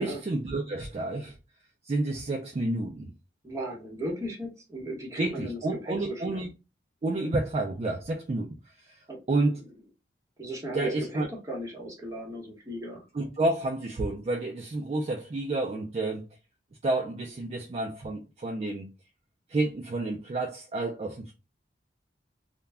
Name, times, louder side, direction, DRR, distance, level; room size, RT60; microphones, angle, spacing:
voice 1, 0.0-1.3 1.8-3.1 5.2-6.5 7.0-8.5 8.8-9.0 9.3-9.6 10.7-11.3 13.1-16.3 16.8-18.9 19.5-21.3, right 2 dB, 35° right, 0.3 m, -30 dB
voice 2, 3.4-6.4 9.1-9.2 10.4-13.0, right 1 dB, 20° right, 1.0 m, -36 dB
2.2 x 2.1 x 3.4 m
head